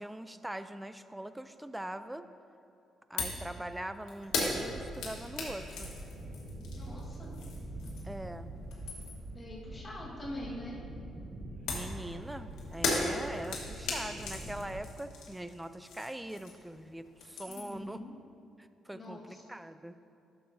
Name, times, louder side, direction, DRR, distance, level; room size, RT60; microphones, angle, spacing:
voice 1, 0.0-2.3 3.1-5.9 8.0-8.5 11.7-18.0 18.6-19.9, right 1 dB, 10° right, 11 dB, 0.3 m, -42 dB
sound 1, 3.2-3.5 3.7-8.2 8.6-9.3 11.7-16.8 17.0-17.8, left 3 dB, 85° left, 1.4 m, -37 dB
sound 2, 4.2-14.8, right 1 dB, 40° right, 1.4 m, -45 dB
voice 2, 6.7-7.3 9.3-10.8 17.5-18.1 18.9-19.4, left 1 dB, 30° left, -5 dB, 1.4 m, -44 dB
11.0 x 6.8 x 2.6 m, 2.6 s
cardioid pair, 90°, 0 cm